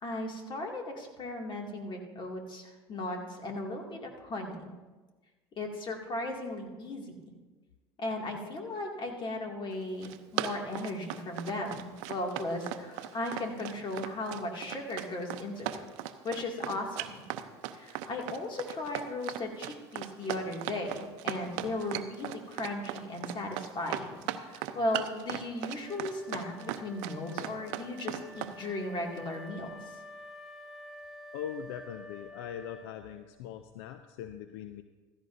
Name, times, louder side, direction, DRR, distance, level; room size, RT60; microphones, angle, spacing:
voice 1, 0.0-4.7 5.6-7.1 8.0-15.8 16.2-17.2 17.7-24.1 24.5-29.7, left 2 dB, 35° left, 1 dB, 2.3 m, -36 dB
Run, 9.8-28.6, right 13 dB, 65° right, 0.6 m, -37 dB
Wind instrument woodwind instrument, 25.8-33.4, left 1 dB, ahead, 1.9 m, -49 dB
voice 2, 31.3-34.8, left 9 dB, 70° left, 10 dB, 0.5 m, -41 dB
15.5 x 13.5 x 2.6 m, 1.3 s
hypercardioid pair, 75°, 13 cm